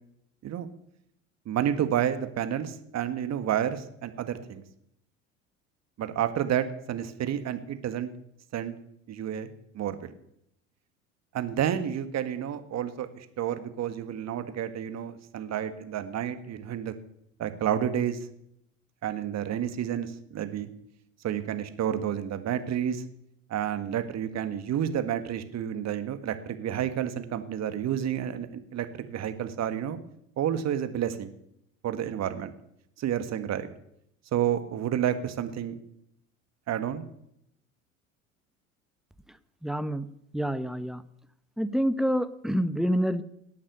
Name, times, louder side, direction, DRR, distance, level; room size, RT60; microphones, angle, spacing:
voice 1, 1.5-4.6 6.0-8.1 8.5-8.7 9.1-10.1 11.3-16.9 17.4-18.2 19.0-20.7 21.2-23.0 23.5-30.0 30.4-31.3 31.8-32.5 33.0-33.7 34.3-35.8 36.7-37.0, right 10 dB, 40° right, 10 dB, 1.7 m, -30 dB
voice 2, 39.3-40.1 40.3-41.0 41.6-43.2, equal, ahead, 13 dB, 0.9 m, -28 dB
18.5 x 8.5 x 6.9 m, 0.75 s
hypercardioid pair, 75°, 40 cm